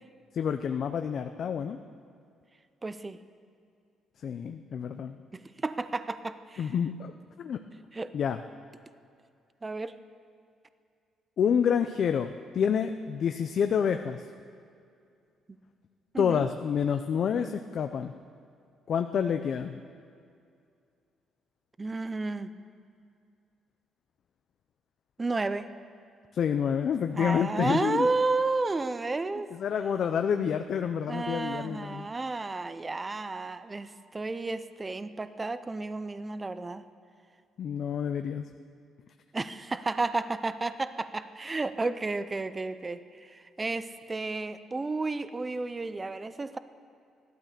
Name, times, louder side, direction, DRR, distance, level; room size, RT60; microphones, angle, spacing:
voice 1, 0.3-1.8 4.2-5.2 6.6-7.1 7.4-7.6 8.1-8.4 11.4-14.2 16.2-18.1 18.9-19.8 26.3-28.1 29.5-32.1 37.6-38.5, left 7 dB, 50° left, 7 dB, 0.5 m, -28 dB
voice 2, 2.8-3.2 5.3-6.7 7.9-8.1 9.6-10.0 16.1-16.5 21.8-22.5 25.2-25.7 27.1-29.5 31.1-36.8 39.3-46.6, right 3 dB, 15° right, 12 dB, 0.5 m, -32 dB
15.5 x 12.0 x 6.7 m, 2.4 s
cardioid pair, 155°, 0 cm